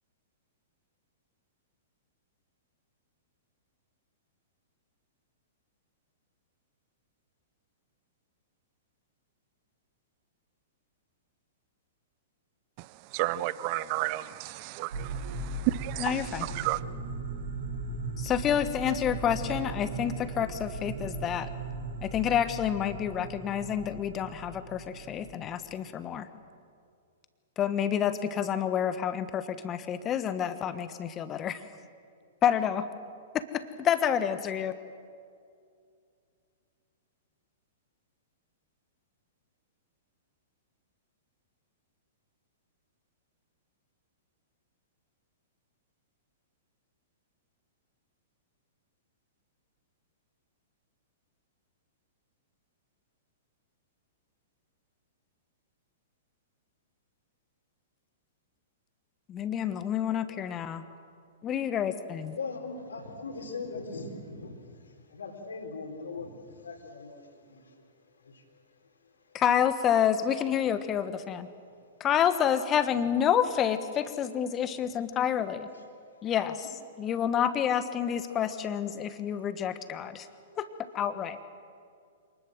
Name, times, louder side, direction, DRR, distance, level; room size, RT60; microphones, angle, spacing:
voice 1, 13.1-14.9 15.8-16.0 16.6-16.8, right 17 dB, 40° right, 18 dB, 0.6 m, -31 dB
sound 1, 14.9-25.4, right 3 dB, 65° right, 5.4 m, -38 dB
voice 2, 16.0-16.5 18.2-21.5 22.0-26.3 27.6-31.6 32.4-32.9 33.3-33.4 33.8-34.7 59.3-60.8 61.4-62.4 69.3-71.5 72.0-75.7 76.2-80.3 80.6-80.7 80.9-81.4, left 9 dB, 25° left, 11 dB, 1.4 m, -28 dB
voice 3, 62.3-64.5 65.1-66.3 66.6-67.7, left 4 dB, 70° left, 3 dB, 4.0 m, -39 dB
27.0 x 20.0 x 7.7 m, 2.3 s
figure-of-eight pair, 105°, 0 cm